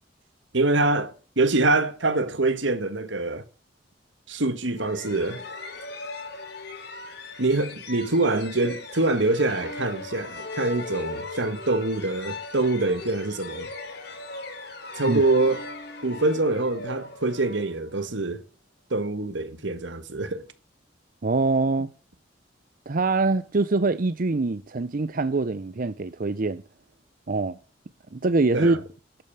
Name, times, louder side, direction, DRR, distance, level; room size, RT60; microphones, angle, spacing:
voice 1, 0.5-3.4 4.3-5.4 7.4-13.7 15.0-15.7 16.0-18.4 18.9-20.5 28.5-28.8, right 2 dB, 75° right, 1.6 m, -25 dB
sound 1, 4.8-18.3, left 3 dB, 60° left, 3.5 m, -38 dB
voice 2, 21.2-21.9 22.9-26.6 27.3-27.6 28.1-28.8, right 3 dB, 45° right, 0.6 m, -24 dB
12.5 x 8.9 x 8.4 m
head